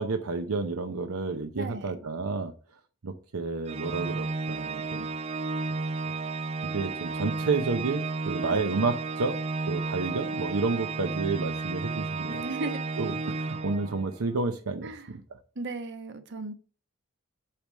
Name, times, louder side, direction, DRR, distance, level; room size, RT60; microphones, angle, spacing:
voice 1, 0.0-2.5 3.0-5.1 6.7-9.4 9.7-12.4 13.0-15.2, right 3 dB, 80° right, 0.7 m, -30 dB
voice 2, 1.5-2.1 8.5-8.6 12.3-12.8 14.8-15.1 15.5-16.6, right 2 dB, 55° right, 1.1 m, -36 dB
Organ, 3.7-14.3, right 3 dB, 30° right, 0.5 m, -33 dB
8.6 x 3.5 x 6.1 m
head